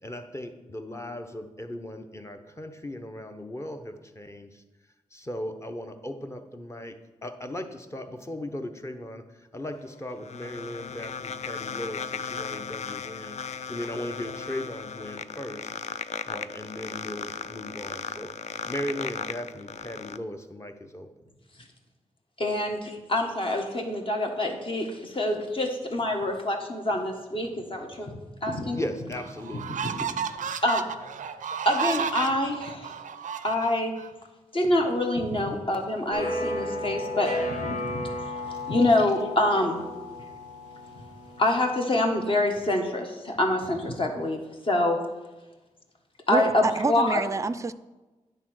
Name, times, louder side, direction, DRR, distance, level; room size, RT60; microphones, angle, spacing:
voice 1, 0.0-4.6 5.1-9.2 9.5-15.7 16.2-18.3 18.7-21.1 28.7-29.9, left 1 dB, 20° left, 0.9 m, -37 dB
sound 1, 9.7-20.2, left 7 dB, 65° left, 0.4 m, -36 dB
voice 2, 22.4-28.1 28.4-28.8 29.8-30.0 30.6-30.9 31.6-32.9 33.4-33.9 34.5-37.3 37.6-38.0 38.7-39.8 41.4-44.4 44.7-45.0 46.3-46.6 46.9-47.2, left 1 dB, 45° left, 1.5 m, -26 dB
sound 2, 28.4-28.5 29.1-34.1, right 7 dB, 90° right, 0.4 m, -32 dB
sound 3, 36.1-41.7, left 1 dB, 80° left, 1.5 m, -34 dB
voice 3, 46.3-47.7, right 4 dB, 25° right, 0.4 m, -27 dB
9.9 x 3.9 x 6.3 m
cardioid pair, 70°, 13 cm